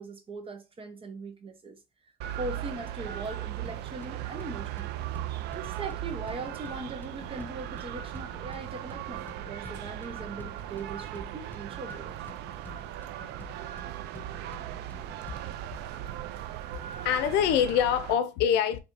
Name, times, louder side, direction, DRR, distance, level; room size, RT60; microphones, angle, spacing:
voice 1, 0.0-1.8 2.4-5.0 5.5-12.4, right 3 dB, 35° right, 1.1 m, -40 dB
sound 1, 2.2-18.1, right 12 dB, 80° right, 0.4 m, -38 dB
sound 2, 3.7-15.7, left 2 dB, 10° left, 0.6 m, -51 dB
voice 2, 16.7-18.8, left 9 dB, 90° left, 0.6 m, -25 dB
4.4 x 3.2 x 2.6 m
cardioid pair, 110°, 17 cm